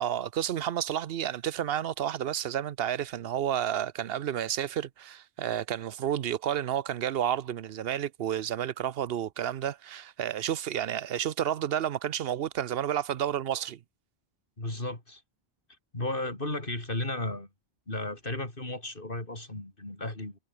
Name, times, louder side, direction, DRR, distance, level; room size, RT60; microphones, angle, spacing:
voice 1, 0.0-13.8, right 10 dB, 70° right, 0.9 m, -31 dB
voice 2, 14.6-15.2 15.9-17.5 17.9-20.4, left 2 dB, 55° left, 5.1 m, -34 dB
omnidirectional pair, 1.1 m